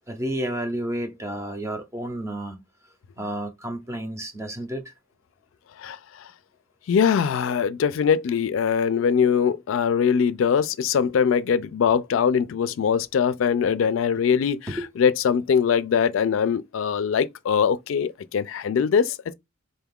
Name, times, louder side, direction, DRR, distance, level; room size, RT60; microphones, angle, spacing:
voice 1, 0.1-2.6 3.2-4.9 14.7-14.9, right 1 dB, 15° right, 0.6 m, -31 dB
voice 2, 6.9-14.6 15.0-19.3, left 7 dB, 75° left, 0.3 m, -22 dB
4.0 x 2.3 x 3.5 m
head